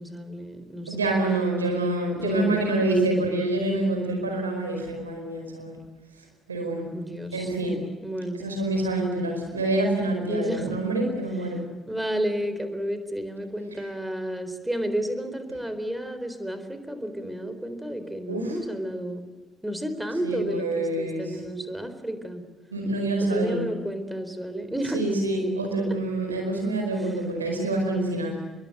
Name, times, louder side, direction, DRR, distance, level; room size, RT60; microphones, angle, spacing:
voice 1, 0.0-1.0 2.2-2.8 6.9-7.5 8.0-8.5 10.2-10.9 11.9-19.3 19.6-22.4 23.2-25.0 27.0-27.1, equal, 5° right, 10 dB, 4.0 m, -31 dB
voice 2, 0.9-5.8 6.5-6.9 7.3-7.8 8.3-11.6 18.3-18.6 20.2-21.4 22.7-23.7 24.9-28.4, right 2 dB, 85° right, 3 dB, 4.8 m, -26 dB
25.0 x 22.0 x 7.8 m, 1.3 s
figure-of-eight pair, 45°, 0 cm